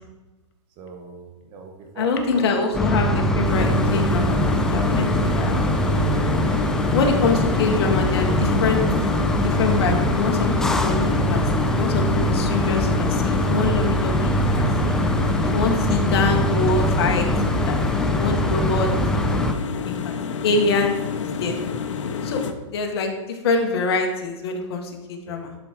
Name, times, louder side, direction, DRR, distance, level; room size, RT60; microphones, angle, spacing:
voice 1, 0.7-2.5 6.0-6.8 19.2-19.4 25.3-25.6, right 4 dB, 30° right, 4 dB, 1.5 m, -41 dB
voice 2, 2.0-5.7 6.9-8.8 9.3-15.0 15.4-17.3 17.7-17.8 18.1-18.9 19.9-20.2 20.4-21.6 22.2-22.4 22.7-25.5, left 4 dB, 55° left, 3 dB, 1.6 m, -25 dB
sound 1, 2.7-19.5, equal, 5° left, 0.3 m, -22 dB
sound 2, 3.4-22.5, left 6 dB, 80° left, 0.9 m, -29 dB
11.0 x 5.0 x 4.6 m, 1.1 s
hypercardioid pair, 155°, 16 cm